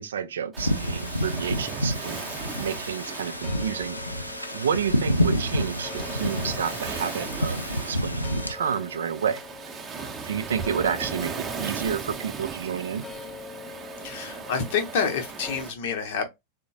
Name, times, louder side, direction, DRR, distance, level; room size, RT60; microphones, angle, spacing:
voice 1, 0.0-2.2 2.6-4.0 4.5-7.6 7.9-9.4 10.2-13.1, right 8 dB, 65° right, 0.3 m, -30 dB
Waves surf, 0.5-15.7, right 5 dB, 20° right, 0.6 m, -38 dB
sound 1, 0.6-8.5, equal, 85° left, 0.4 m, -29 dB
sound 2, 3.2-15.6, left 6 dB, 20° left, 0.4 m, -45 dB
voice 2, 14.0-16.3, left 6 dB, 50° left, 0.7 m, -28 dB
3.7 x 2.1 x 2.6 m
figure-of-eight pair, 90°, 0 cm